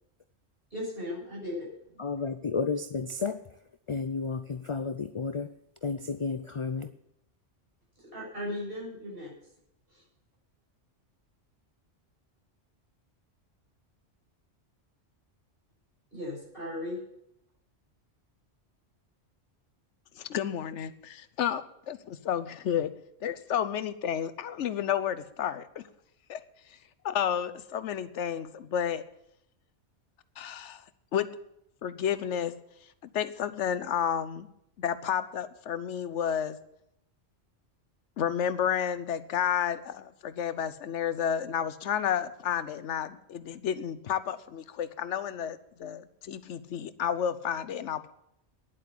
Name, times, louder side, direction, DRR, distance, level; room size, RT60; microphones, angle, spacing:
voice 1, 0.7-2.0 8.0-9.3 9.9-10.0 16.1-17.0, left 1 dB, 50° right, -4 dB, 6.5 m, -37 dB
voice 2, 2.0-3.5 3.9-5.5 5.8-6.9, left 4 dB, 50° left, 11 dB, 0.4 m, -32 dB
voice 3, 20.2-22.9 23.2-25.8 26.3-26.4 27.0-29.0 30.4-30.8 31.1-31.3 31.8-32.5 33.0-34.5 34.8-36.6 38.2-48.1, left 9 dB, 80° left, 14 dB, 1.0 m, -31 dB
10.5 x 8.6 x 8.5 m, 0.77 s
omnidirectional pair, 1.2 m